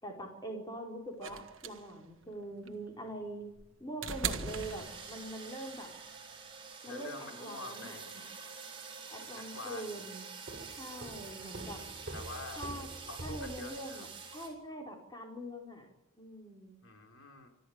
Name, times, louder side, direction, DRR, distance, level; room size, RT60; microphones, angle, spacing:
voice 1, 0.0-3.5 3.8-5.9 6.8-8.3 9.1-10.3 10.8-11.8 12.6-12.9 13.2-15.9 16.2-16.7, right 1 dB, 20° left, 1 dB, 4.8 m, -43 dB
sound 1, 1.2-5.5 6.7-6.8, right 6 dB, 75° right, 1.4 m, -40 dB
sound 2, 4.5-14.5, right 5 dB, 25° right, 6.5 m, -47 dB
voice 2, 6.9-8.2 9.4-10.0 12.1-12.7 13.1-14.0 16.8-17.5, left 3 dB, 90° left, 4 dB, 4.7 m, -46 dB
sound 3, 10.5-14.2, right 1 dB, 45° right, 3.9 m, -46 dB
25.5 x 14.5 x 9.0 m, 0.86 s
head